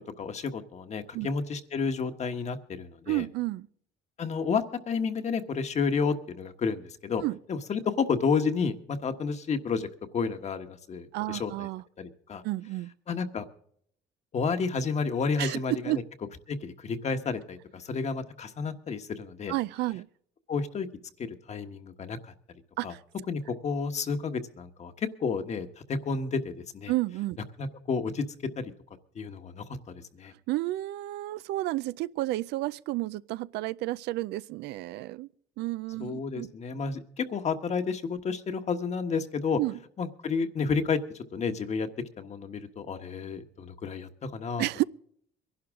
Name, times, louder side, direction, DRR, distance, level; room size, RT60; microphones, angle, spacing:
voice 1, 0.2-3.2 4.2-7.2 7.5-9.9 10.1-11.7 12.0-12.4 13.1-13.5 14.3-16.0 16.5-19.5 20.5-20.9 21.2-22.3 22.8-22.9 23.3-26.9 27.6-28.3 28.6-28.7 29.1-30.3 36.0-39.6 40.0-41.9 42.2-44.7, left 5 dB, 40° left, 1.3 m, -31 dB
voice 2, 3.1-3.7 7.2-7.4 11.1-11.8 12.4-12.9 15.4-16.0 19.5-20.1 22.8-23.0 26.9-27.4 30.5-35.3 35.6-36.5 39.6-39.8 44.6-44.8, right 18 dB, 80° right, 0.4 m, -31 dB
22.5 x 11.5 x 3.7 m
cardioid pair, 110°, 17 cm